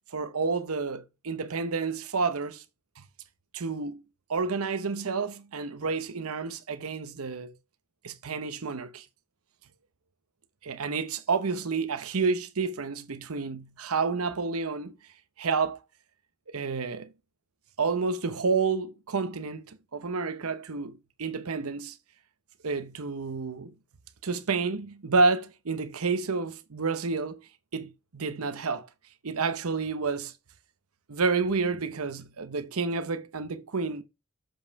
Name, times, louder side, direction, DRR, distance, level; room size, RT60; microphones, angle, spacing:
voice 1, 0.1-2.6 3.0-3.1 3.5-4.0 4.3-7.5 8.0-9.0 10.6-14.9 15.4-15.8 16.5-17.1 17.8-22.0 22.6-23.7 24.2-27.4 27.7-28.9 29.2-30.3 31.1-34.0, right 4 dB, 85° right, 0.9 m, -29 dB
7.2 x 5.5 x 4.7 m
head